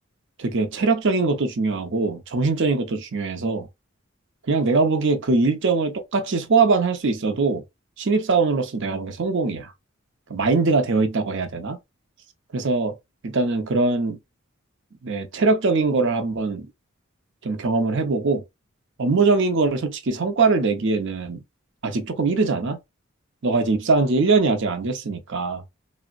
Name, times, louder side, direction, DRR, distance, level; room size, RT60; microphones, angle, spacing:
voice 1, 0.4-3.7 4.5-7.6 8.0-9.7 10.3-11.8 12.5-12.9 13.2-14.2 15.0-16.7 17.4-18.4 19.0-21.4 21.8-22.8 23.4-25.6, right 3 dB, 60° right, 0.6 m, -22 dB
3.4 x 2.1 x 2.3 m
head